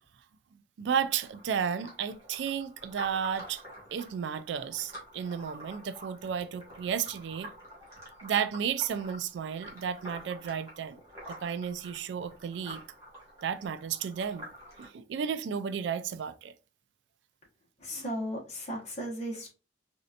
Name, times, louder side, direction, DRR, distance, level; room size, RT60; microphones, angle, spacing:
voice 1, 0.8-3.6 3.9-7.5 8.2-11.0 11.3-12.8 13.4-14.5 14.8-16.5, right 7 dB, 70° right, 0.3 m, -33 dB
sound 1, 0.9-14.9, right 1 dB, 15° right, 1.7 m, -48 dB
voice 2, 17.8-19.5, equal, 35° left, 1.4 m, -36 dB
4.1 x 2.7 x 2.5 m
head